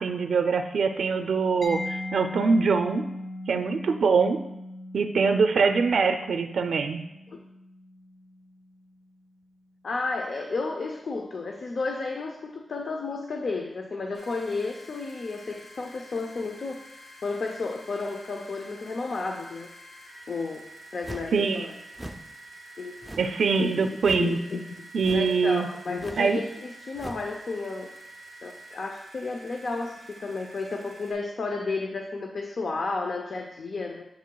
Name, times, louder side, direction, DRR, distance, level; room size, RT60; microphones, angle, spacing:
voice 1, 0.0-3.0 3.5-4.4 4.9-7.0 21.3-21.7 23.2-24.4 24.9-25.7 26.2-26.4, right 5 dB, 75° right, 6 dB, 0.4 m, -23 dB
Mallet percussion, 1.6-9.2, left 1 dB, 35° left, 1.6 m, -39 dB
voice 2, 9.8-16.8 17.2-19.7 20.3-20.6 20.9-21.7 22.8-23.2 23.6-23.9 24.1-24.9 25.1-27.9 28.4-34.1, left 3 dB, 55° left, 3 dB, 0.5 m, -32 dB
sound 1, 14.1-31.1, right 1 dB, 75° left, 2.5 m, -48 dB
sound 2, 21.0-21.4 21.9-22.3 23.0-23.4 24.0-24.4 25.0-25.4 26.0-26.3 26.9-27.3, right 1 dB, 10° right, 0.4 m, -40 dB
8.2 x 7.8 x 2.3 m, 0.89 s
wide cardioid pair, 150°, 0 cm